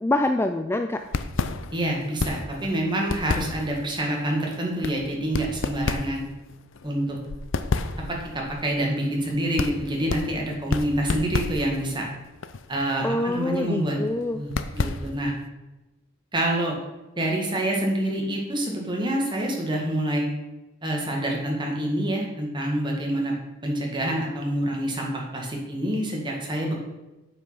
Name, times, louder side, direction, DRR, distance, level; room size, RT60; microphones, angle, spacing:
voice 1, 0.0-1.0 13.0-14.4, left 1 dB, 10° left, 6 dB, 0.3 m, -25 dB
sound 1, 1.0-15.4, left 3 dB, 70° left, 0.6 m, -32 dB
voice 2, 1.7-6.2 6.8-7.2 8.1-12.1 12.7-14.0 14.3-15.3 16.3-16.8 17.2-20.3 20.8-23.3 23.6-26.8, right 1 dB, 25° right, -1 dB, 1.9 m, -27 dB
8.5 x 5.6 x 5.8 m, 1.1 s
head